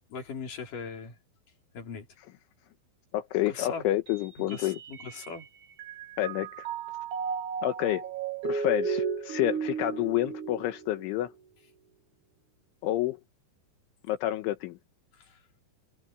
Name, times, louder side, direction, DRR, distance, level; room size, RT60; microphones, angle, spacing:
voice 1, 0.1-1.1 1.7-2.1 3.5-3.8 4.4-5.5 15.1-15.4, left 5 dB, 45° left, 5.3 m, -39 dB
voice 2, 3.1-4.8 6.2-6.7 7.6-8.0 8.4-11.3 12.8-13.2 14.1-14.8, left 14 dB, 80° left, 3.6 m, -29 dB
Mallet percussion, 4.1-5.4 5.8-11.2, right 6 dB, 55° right, 2.5 m, -34 dB
omnidirectional pair, 5.6 m